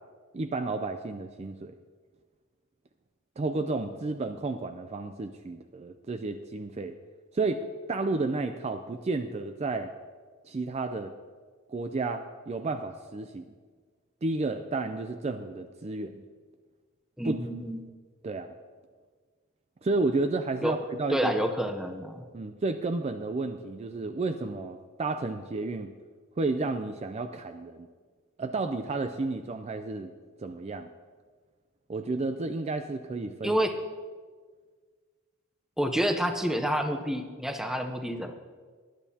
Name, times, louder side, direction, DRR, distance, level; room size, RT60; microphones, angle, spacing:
voice 1, 0.3-1.8 3.4-7.0 7.3-9.9 10.4-11.1 11.7-13.5 14.2-16.2 17.2-17.5 18.2-18.5 19.8-21.3 22.3-25.9 26.4-27.9 28.4-30.1 30.4-30.9 31.9-33.6, right 3 dB, 30° right, 8 dB, 0.4 m, -31 dB
voice 2, 17.2-17.8 20.6-20.7 21.1-22.2 33.4-33.7 35.8-38.3, equal, ahead, 5 dB, 0.7 m, -28 dB
19.0 x 10.5 x 2.8 m, 1.5 s
head